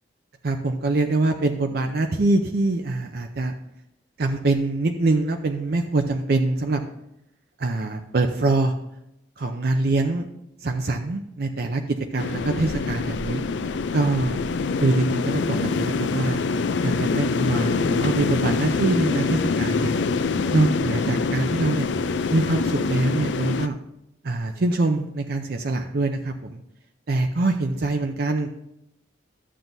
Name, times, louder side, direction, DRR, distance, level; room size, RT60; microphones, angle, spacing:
voice 1, 0.4-3.5 4.2-6.8 7.6-8.7 9.4-10.3 10.6-13.4 13.9-14.4 14.8-16.4 16.8-19.9 20.5-21.9 22.3-23.7 24.2-26.6 27.1-28.5, right 2 dB, 55° right, 5 dB, 0.6 m, -24 dB
sound 1, 12.2-23.7, left 4 dB, 70° left, 0.4 m, -25 dB
12.5 x 7.4 x 2.7 m, 0.81 s
head